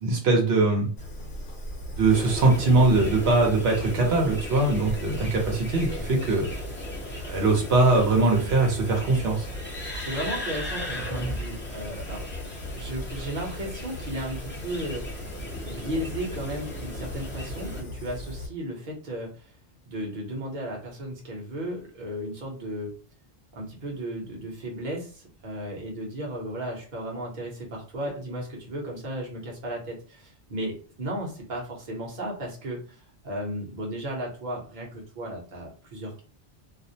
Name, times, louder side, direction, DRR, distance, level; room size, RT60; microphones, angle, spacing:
voice 1, 0.0-0.9 2.0-6.5 7.1-9.5, right 3 dB, 80° right, 0 dB, 0.9 m, -22 dB
Fire, 1.0-18.5, left 1 dB, 55° left, 0.8 m, -38 dB
sound 1, 2.1-17.8, left 1 dB, 15° left, 0.5 m, -38 dB
voice 2, 10.0-12.5 12.8-15.3 15.6-19.5 19.9-22.9 23.5-36.2, right 1 dB, 50° right, -2 dB, 0.8 m, -35 dB
2.4 x 2.0 x 2.6 m, 0.39 s
omnidirectional pair, 1.1 m